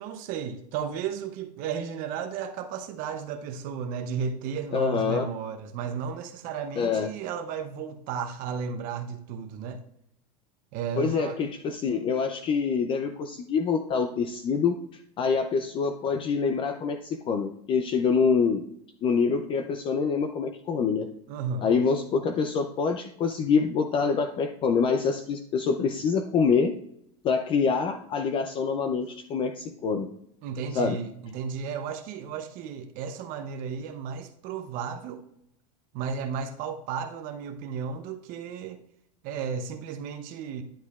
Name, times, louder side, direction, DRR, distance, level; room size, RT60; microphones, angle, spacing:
voice 1, 0.0-9.8 10.7-11.4 21.3-21.7 30.4-35.2 35.9-38.8 39.2-40.6, right 6 dB, 45° right, 8 dB, 0.7 m, -34 dB
voice 2, 4.7-5.3 6.8-7.1 11.0-14.8 15.2-18.6 19.0-21.1 21.6-26.7 27.2-30.1 30.8-31.0, left 5 dB, 25° left, 7 dB, 0.4 m, -26 dB
10.0 x 7.4 x 2.4 m, 0.74 s
supercardioid pair, 145°, 20 cm